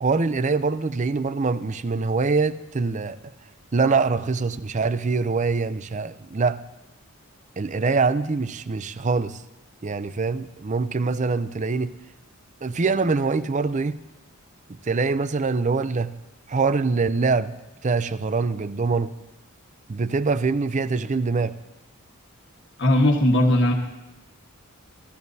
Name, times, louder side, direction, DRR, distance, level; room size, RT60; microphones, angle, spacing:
voice 1, 0.0-3.2 3.7-6.6 7.6-9.4 9.8-11.9 12.6-14.0 14.7-16.1 16.5-17.5 17.8-19.1 19.9-21.5, right 4 dB, 35° right, 0.5 m, -24 dB
voice 2, 22.8-23.7, left 1 dB, 55° left, 1.4 m, -18 dB
24.5 x 14.0 x 2.7 m
head